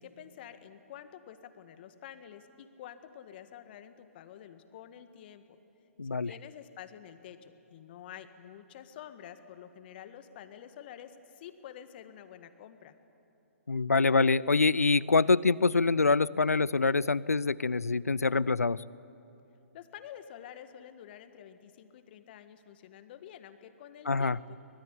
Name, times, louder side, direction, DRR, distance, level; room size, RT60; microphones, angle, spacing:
voice 1, 0.0-5.6 6.1-12.9 19.7-24.6, left 10 dB, 40° left, 9 dB, 1.7 m, -49 dB
voice 2, 6.0-6.3 13.7-18.8 24.1-24.4, left 4 dB, 85° left, 21 dB, 0.6 m, -25 dB
24.5 x 20.0 x 9.9 m, 2.8 s
figure-of-eight pair, 130°, 8 cm